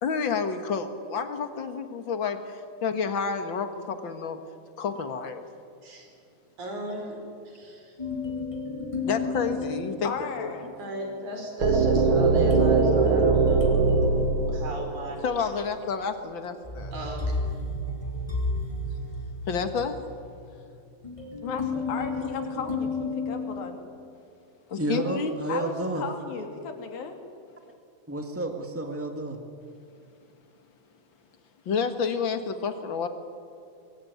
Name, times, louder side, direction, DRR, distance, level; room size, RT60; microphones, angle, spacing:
voice 1, 0.0-4.4 4.8-5.4 9.0-10.7 15.2-16.9 19.5-20.0 24.7-25.4 31.7-33.1, left 5 dB, 45° left, 8 dB, 1.7 m, -30 dB
voice 2, 6.6-7.2 7.5-7.9 10.8-15.2 16.9-17.4, right 1 dB, 60° right, 3 dB, 6.2 m, -36 dB
sound 1, 8.0-10.6 12.2-15.2 16.6-24.0, left 2 dB, 10° left, 3.4 m, -32 dB
voice 3, 10.0-10.7 21.4-23.8 25.5-27.2, left 6 dB, 85° left, 5 dB, 4.4 m, -35 dB
sound 2, 11.6-15.5, right 4 dB, 40° right, 2.8 m, -21 dB
voice 4, 24.8-26.0 28.1-29.4, right 2 dB, 20° right, 4 dB, 0.3 m, -30 dB
25.5 x 22.5 x 9.5 m, 2.5 s
omnidirectional pair, 4.0 m